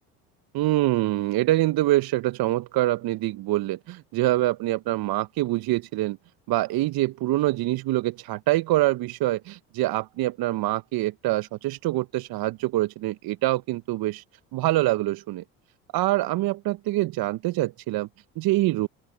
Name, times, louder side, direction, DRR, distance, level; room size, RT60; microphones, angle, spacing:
voice 1, 0.5-6.2 6.5-14.2 14.5-15.4 15.9-18.1 18.4-18.9, right 17 dB, 55° right, 1.1 m, -25 dB
open air
hypercardioid pair, 65°, 44 cm